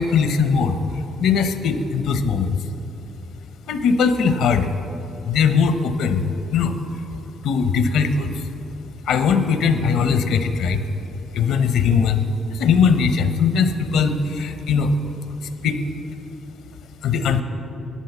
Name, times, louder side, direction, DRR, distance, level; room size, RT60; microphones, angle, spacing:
voice 1, 0.0-2.6 3.7-4.7 5.2-6.2 6.5-6.8 7.4-8.3 9.0-10.8 11.3-15.0 15.4-15.8 17.0-17.4, left 5 dB, 80° left, 9 dB, 0.8 m, -20 dB
11.5 x 8.8 x 7.3 m, 2.9 s
cardioid pair, 90°, 0 cm